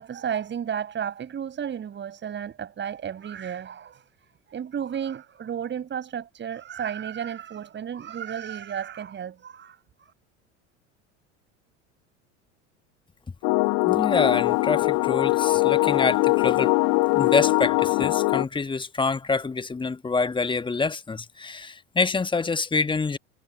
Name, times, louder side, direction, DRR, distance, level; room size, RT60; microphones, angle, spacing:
voice 1, 0.0-4.0 4.5-10.1, right 8 dB, 30° right, 5.9 m, -33 dB
sound 1, 13.4-18.4, left 28 dB, 45° left, 0.9 m, -22 dB
voice 2, 13.8-16.8 17.1-23.2, left 4 dB, 15° left, 1.4 m, -26 dB
figure-of-eight pair, 70°, 37 cm